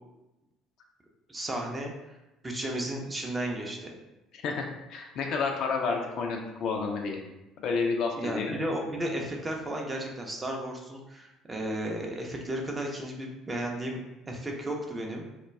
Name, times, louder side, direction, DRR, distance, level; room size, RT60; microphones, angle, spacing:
voice 1, 1.3-1.9 2.4-3.9 8.2-14.0 14.3-15.2, right 1 dB, 20° right, 0 dB, 0.5 m, -34 dB
voice 2, 4.4-7.2 7.6-8.6, left 4 dB, 50° left, 2 dB, 0.3 m, -30 dB
2.2 x 2.2 x 3.2 m, 0.98 s
figure-of-eight pair, 55°, 0 cm